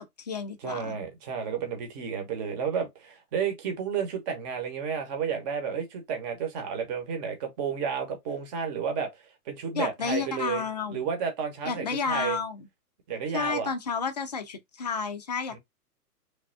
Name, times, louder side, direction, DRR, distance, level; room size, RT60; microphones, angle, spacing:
voice 1, 0.0-1.0 9.7-11.1 11.6-12.7 13.3-15.6, left 5 dB, 30° left, 0.4 m, -31 dB
voice 2, 0.6-9.1 9.5-10.6 10.9-12.4 13.1-13.7 15.5-15.6, right 7 dB, 25° right, 1.0 m, -31 dB
3.3 x 2.2 x 3.8 m
hypercardioid pair, 145°, 46 cm